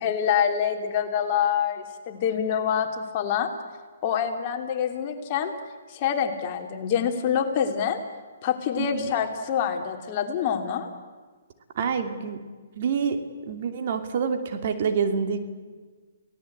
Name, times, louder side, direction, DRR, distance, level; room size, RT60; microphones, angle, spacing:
voice 1, 0.0-3.5 4.0-5.5 5.9-8.0 8.4-10.9, left 8 dB, 35° left, 4 dB, 3.1 m, -26 dB
voice 2, 8.8-9.1 11.7-12.4 12.8-13.2 13.5-15.4, right 6 dB, 50° right, 7 dB, 2.7 m, -27 dB
29.5 x 18.0 x 8.8 m, 1.4 s
hypercardioid pair, 145°, 0 cm